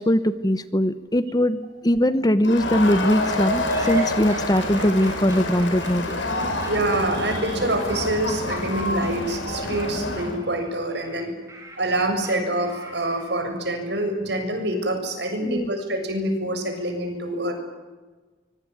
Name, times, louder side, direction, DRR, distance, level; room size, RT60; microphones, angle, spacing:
voice 1, 0.0-6.0 15.4-15.7, equal, 20° left, 13 dB, 0.9 m, -21 dB
Crowd, 2.4-10.4, left 1 dB, 80° left, 6.7 m, -27 dB
sound 1, 3.6-13.5, right 2 dB, 15° right, 6.6 m, -43 dB
voice 2, 6.6-11.3 11.8-17.5, right 1 dB, 60° right, 5 dB, 7.0 m, -26 dB
24.5 x 24.0 x 9.5 m, 1.3 s
head